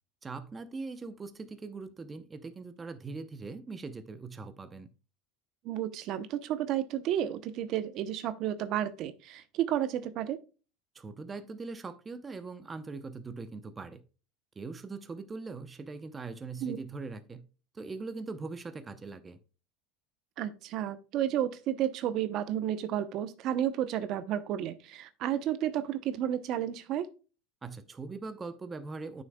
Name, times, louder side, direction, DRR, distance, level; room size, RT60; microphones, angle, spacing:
voice 1, 0.2-4.9 10.9-14.0 14.6-17.4 17.7-19.4 27.6-29.2, right 4 dB, 20° right, 0.7 m, -41 dB
voice 2, 5.6-10.4 16.6-16.8 20.4-27.1, right 11 dB, 50° right, 0.8 m, -32 dB
9.0 x 6.4 x 2.3 m
supercardioid pair, 120°, 0 cm